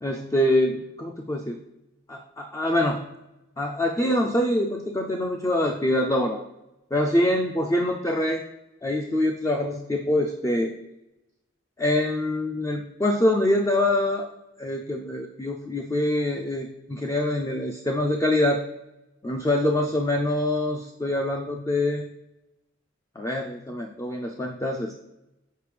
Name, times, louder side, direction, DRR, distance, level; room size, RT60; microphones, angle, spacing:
voice 1, 0.0-1.6 2.1-3.0 3.6-6.4 6.9-8.4 8.8-10.7 11.8-14.3 14.6-18.6 19.2-22.1 23.2-25.0, left 1 dB, 15° left, 2 dB, 0.3 m, -25 dB
6.5 x 5.1 x 3.3 m, 0.94 s
head